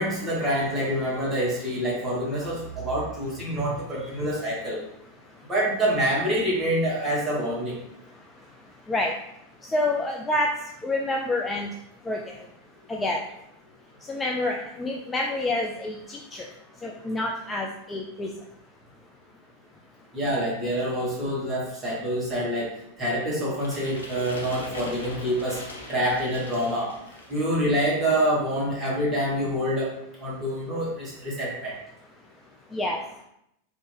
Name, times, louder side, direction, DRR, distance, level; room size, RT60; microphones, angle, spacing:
voice 1, 0.0-4.8 5.5-7.8 20.1-25.6 25.9-26.9 27.3-29.9 30.2-31.8, equal, 15° right, -6 dB, 1.4 m, -26 dB
voice 2, 9.6-10.5 10.8-11.7 12.1-12.2 12.9-13.2 14.0-16.5 16.8-18.3 32.7-33.2, left 2 dB, 15° left, 0 dB, 0.3 m, -28 dB
sound 1, 23.5-27.5, left 1 dB, 75° left, 0.8 m, -41 dB
3.2 x 2.5 x 3.3 m, 0.79 s
figure-of-eight pair, 90°, 0 cm